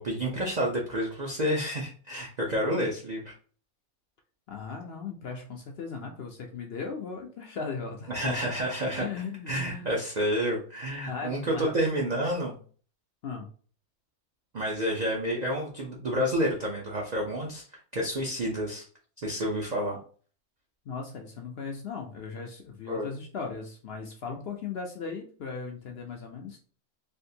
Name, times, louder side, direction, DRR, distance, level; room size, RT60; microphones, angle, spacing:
voice 1, 0.0-3.3 8.1-9.1 9.5-12.6 14.5-17.6 17.9-18.8 19.2-20.0 22.9-23.1, equal, 45° right, -2 dB, 0.5 m, -29 dB
voice 2, 4.5-8.5 9.0-10.0 11.1-11.7 13.2-13.5 20.9-26.6, left 5 dB, 65° left, 2 dB, 0.6 m, -37 dB
3.5 x 2.5 x 2.7 m, 0.42 s
omnidirectional pair, 1.4 m